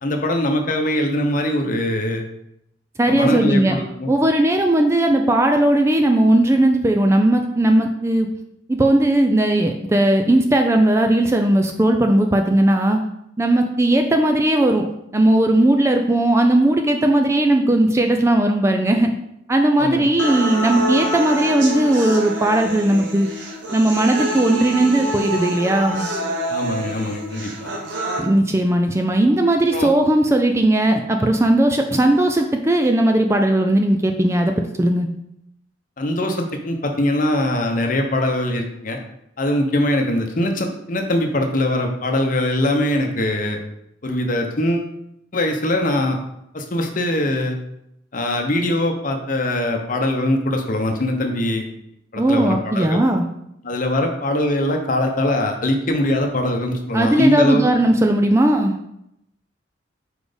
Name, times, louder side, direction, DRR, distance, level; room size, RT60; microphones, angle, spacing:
voice 1, 0.0-2.2 3.1-4.1 19.8-20.0 26.5-27.7 29.7-30.0 36.0-39.0 39.4-43.6 44.0-44.9 45.3-46.2 46.5-47.6 48.1-51.7 52.1-53.0 53.6-57.6, left 1 dB, 45° left, 3 dB, 0.8 m, -22 dB
voice 2, 3.0-3.8 4.1-8.3 8.7-13.0 13.4-14.8 15.1-19.1 19.5-23.3 23.7-26.1 28.2-34.5 34.8-35.1 52.2-53.3 56.9-58.8, right 1 dB, 15° right, 4 dB, 0.4 m, -17 dB
sound 1, 20.2-28.2, right 1 dB, 70° right, 1.1 m, -27 dB
4.8 x 4.2 x 5.0 m, 0.80 s
head